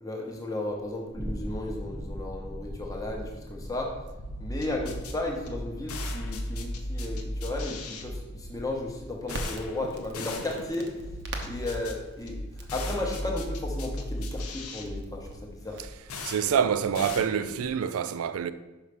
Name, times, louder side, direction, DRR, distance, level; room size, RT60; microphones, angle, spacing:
voice 1, 0.0-3.9 4.4-10.9 11.5-12.4 12.7-15.8 16.4-16.6, left 2 dB, 15° left, 1.0 m, -34 dB
sound 1, 1.0-11.2, equal, 15° right, 0.8 m, -42 dB
sound 2, 4.2-17.8, left 1 dB, 90° left, 0.8 m, -37 dB
Crackle, 9.2-17.2, right 1 dB, 50° right, 0.8 m, -45 dB
voice 2, 16.2-18.5, right 7 dB, 80° right, 0.4 m, -26 dB
5.6 x 5.6 x 4.8 m
head